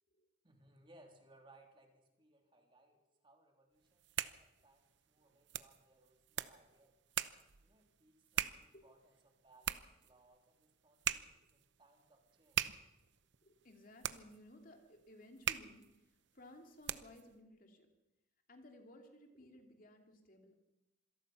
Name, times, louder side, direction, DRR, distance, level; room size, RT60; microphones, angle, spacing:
voice 1, 0.4-7.0 7.6-12.7, right 2 dB, 25° right, 2 dB, 3.4 m, -67 dB
sound 1, 3.8-17.3, right 10 dB, 65° right, 0.8 m, -43 dB
voice 2, 13.4-17.9 18.5-20.5, left 1 dB, 45° left, 4 dB, 2.7 m, -58 dB
26.0 x 18.5 x 5.6 m, 0.97 s
head